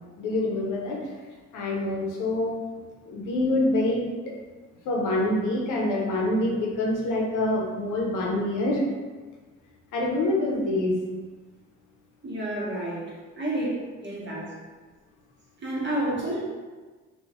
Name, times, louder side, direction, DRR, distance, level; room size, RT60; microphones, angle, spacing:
voice 1, 0.2-1.1 1.5-2.5 3.0-4.3 4.8-8.8 9.9-11.0, left 1 dB, 85° left, -1 dB, 0.8 m, -26 dB
voice 2, 12.2-13.7 14.0-14.5 15.6-16.4, right 1 dB, 40° right, -6 dB, 1.2 m, -30 dB
3.0 x 2.3 x 3.6 m, 1.3 s
cardioid pair, 90°, 30 cm